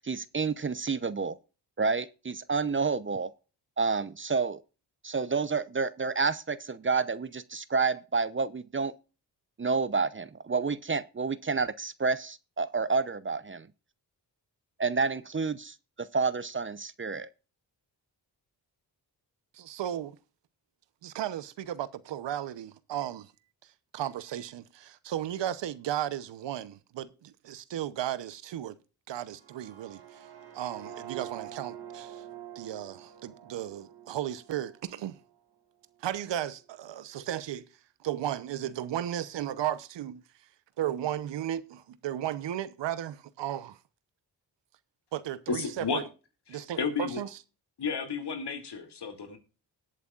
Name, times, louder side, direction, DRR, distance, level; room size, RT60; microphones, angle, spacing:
voice 1, 0.0-1.4 1.8-3.3 3.8-4.6 5.0-8.9 9.6-13.7 14.8-17.3, right 4 dB, 30° right, 0.7 m, -29 dB
voice 2, 19.5-20.2 21.0-23.3 23.9-28.8 29.1-30.3 30.5-32.2 32.5-35.2 36.0-37.7 38.0-40.2 40.8-43.8 45.1-46.0 46.5-47.3, right 11 dB, 85° right, 0.9 m, -35 dB
sound 1, 29.3-35.3, right 10 dB, 65° right, 1.8 m, -46 dB
voice 3, 45.5-46.1 46.5-47.2 47.8-49.4, left 5 dB, 70° left, 2.7 m, -32 dB
19.0 x 8.3 x 2.4 m
cardioid pair, 60°, 42 cm